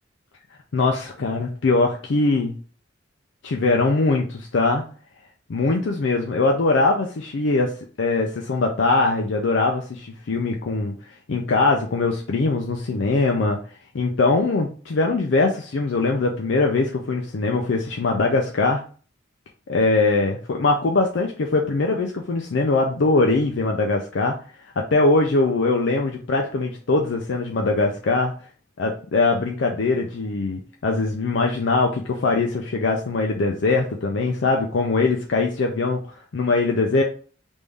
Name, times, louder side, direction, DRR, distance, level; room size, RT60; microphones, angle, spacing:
voice 1, 0.7-2.5 3.4-4.8 5.5-7.7 8.0-11.0 11.3-13.6 13.9-18.8 19.7-24.3 24.8-28.3 28.8-36.0 36.3-37.0, left 3 dB, 65° left, 1 dB, 0.5 m, -21 dB
3.5 x 2.6 x 3.3 m, 0.40 s
head